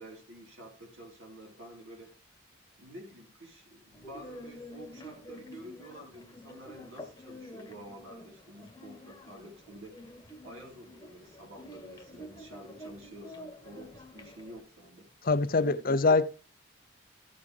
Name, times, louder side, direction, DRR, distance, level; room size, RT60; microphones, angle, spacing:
voice 1, 0.0-2.1 2.8-10.0 10.4-15.1 15.6-16.0, right 1 dB, 75° right, 4.0 m, -49 dB
sound 1, 3.9-14.6, left 1 dB, 15° left, 1.2 m, -48 dB
voice 2, 15.2-16.3, left 3 dB, 45° left, 0.6 m, -24 dB
15.0 x 6.8 x 3.3 m
head